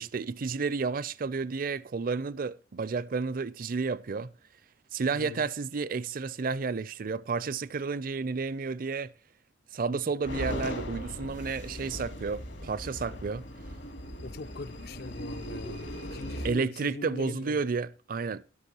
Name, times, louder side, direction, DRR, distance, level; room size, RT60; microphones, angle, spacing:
voice 1, 0.0-4.3 4.9-9.1 9.7-13.4 16.4-18.4, right 4 dB, 50° right, 0.5 m, -31 dB
voice 2, 5.1-5.4 14.2-17.6, left 3 dB, 55° left, 0.5 m, -41 dB
sound 1, 10.2-16.5, equal, 70° left, 2.2 m, -38 dB
13.0 x 11.0 x 2.9 m
head